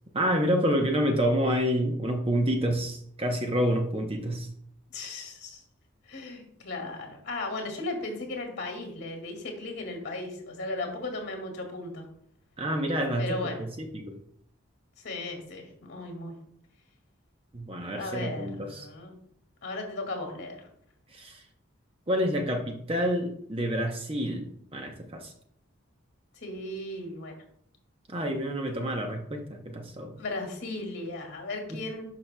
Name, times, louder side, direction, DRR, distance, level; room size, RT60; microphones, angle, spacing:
voice 1, 0.1-4.5 12.6-14.2 17.5-18.9 21.1-21.4 22.1-25.3 28.1-30.2 31.7-31.8, equal, 25° right, 3 dB, 0.7 m, -28 dB
voice 2, 4.9-5.6 6.1-12.1 13.2-13.6 15.0-16.3 17.9-19.1 19.6-20.7 26.3-27.4 30.2-32.0, left 2 dB, 55° left, 3 dB, 2.1 m, -36 dB
10.5 x 5.8 x 2.2 m, 0.67 s
head